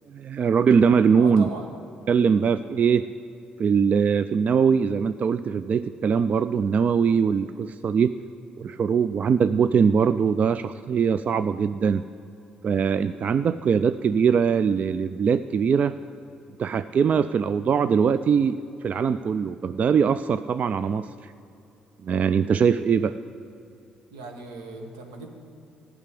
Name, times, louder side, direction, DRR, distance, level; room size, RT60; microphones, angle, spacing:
voice 1, 0.1-1.5 2.1-3.1 3.6-8.1 8.6-12.0 12.6-16.0 16.6-18.6 18.8-21.3 22.0-23.2, right 6 dB, 45° right, 13 dB, 0.3 m, -22 dB
voice 2, 1.2-1.7 24.1-25.3, right 3 dB, 80° right, 3 dB, 1.5 m, -38 dB
14.0 x 6.0 x 9.8 m, 2.8 s
hypercardioid pair, 50°, 3 cm